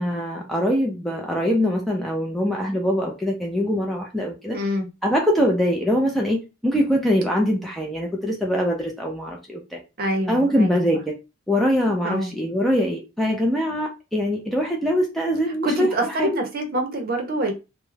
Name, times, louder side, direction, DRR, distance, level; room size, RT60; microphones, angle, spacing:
voice 1, 0.0-4.6 5.0-9.8 10.3-11.1 11.5-15.9 16.2-16.3, equal, ahead, 0.3 m, -23 dB
voice 2, 4.5-4.9 10.0-10.8 12.0-12.3 15.6-17.5, right 1 dB, 45° right, 0.6 m, -25 dB
2.3 x 2.1 x 3.1 m
head